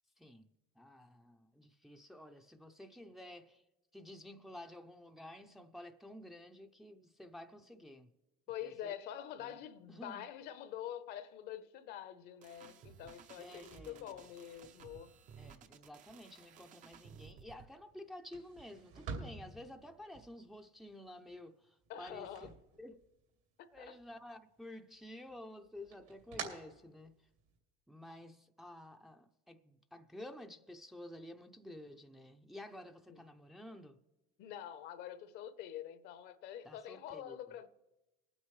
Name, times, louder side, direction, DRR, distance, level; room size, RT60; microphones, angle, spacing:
voice 1, 0.2-3.6 3.9-8.1 8.6-8.9 9.4-9.6 9.9-10.3 13.4-14.3 15.4-22.5 22.8-23.0 23.7-27.2 27.9-34.0 36.6-37.4, left 1 dB, ahead, 0.5 m, -52 dB
voice 2, 8.5-15.1 21.9-22.5 23.6-23.9 33.1-33.2 34.4-37.7, left 10 dB, 60° left, 0.8 m, -46 dB
sound 1, 12.4-17.7, right 7 dB, 40° right, 0.7 m, -57 dB
sound 2, 13.5-23.4 23.7-24.6 24.9-27.6, right 5 dB, 70° right, 2.8 m, -51 dB
21.0 x 9.0 x 3.2 m
supercardioid pair, 125°, 19 cm